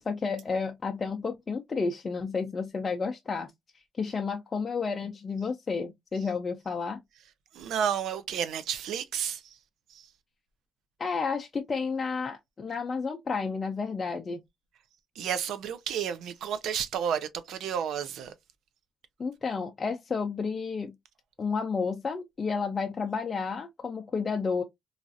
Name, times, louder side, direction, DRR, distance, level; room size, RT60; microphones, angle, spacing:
voice 1, 0.0-3.5 4.0-7.0 11.0-14.4 19.2-20.9 21.4-24.6, left 5 dB, 35° left, 0.5 m, -31 dB
voice 2, 7.5-9.6 15.2-18.3, right 8 dB, 80° right, 0.5 m, -31 dB
3.2 x 2.5 x 2.5 m
cardioid pair, 90°, 0 cm